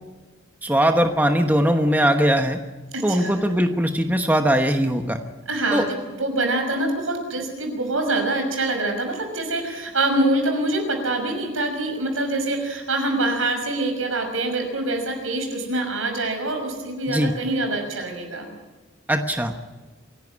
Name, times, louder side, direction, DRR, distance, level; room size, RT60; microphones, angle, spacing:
voice 1, 0.6-2.6 3.0-5.2 5.7-5.8 17.1-17.3 19.1-19.5, equal, 10° right, 5 dB, 1.1 m, -20 dB
voice 2, 2.9-3.4 5.5-18.5, right 2 dB, 85° right, 4 dB, 5.8 m, -25 dB
26.5 x 11.5 x 9.8 m, 1.2 s
head